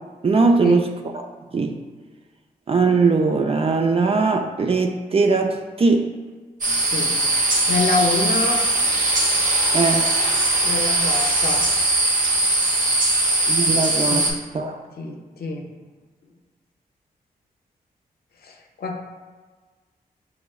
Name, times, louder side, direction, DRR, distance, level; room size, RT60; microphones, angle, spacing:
voice 1, 0.2-0.9 1.1-1.3 1.5-1.7 2.7-6.1 9.7-10.1 13.5-14.2 14.5-14.8, right 4 dB, 35° right, 3 dB, 0.4 m, -20 dB
sound 1, 6.6-14.3, right 2 dB, 55° right, 0.8 m, -20 dB
voice 2, 6.8-7.2 7.7-8.6 10.6-11.7 13.0-13.2 14.1-14.3 15.0-15.7 18.4-19.0, left 3 dB, 70° left, 2 dB, 0.5 m, -26 dB
4.6 x 3.0 x 2.3 m, 1.4 s
cardioid pair, 60°, 16 cm